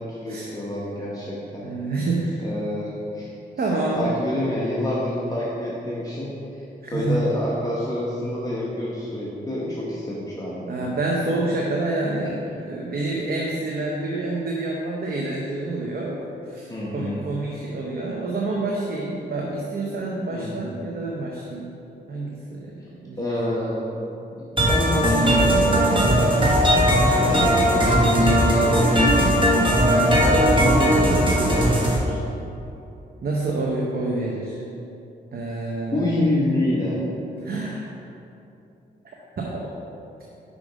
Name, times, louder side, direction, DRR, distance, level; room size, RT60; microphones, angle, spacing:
voice 1, 0.1-1.7 2.4-3.3 3.8-6.6 6.9-10.9 12.2-12.3 16.7-17.2 20.3-20.7 23.2-24.0 24.3-26.5 27.3-29.5 30.2-32.2 35.9-37.0, left 1 dB, 20° left, -7 dB, 1.1 m, -27 dB
voice 2, 1.6-2.4 3.6-4.2 6.8-7.3 10.7-21.8 22.1-23.4 25.9-26.4 26.7-27.4 30.0-30.3 33.2-34.6 35.3-36.1 37.4-37.9 39.4-39.7, right 2 dB, 55° right, -2 dB, 0.8 m, -28 dB
sound 1, 24.6-32.0, equal, 25° right, 1.2 m, -18 dB
5.1 x 5.0 x 5.0 m, 2.8 s
cardioid pair, 65°, 19 cm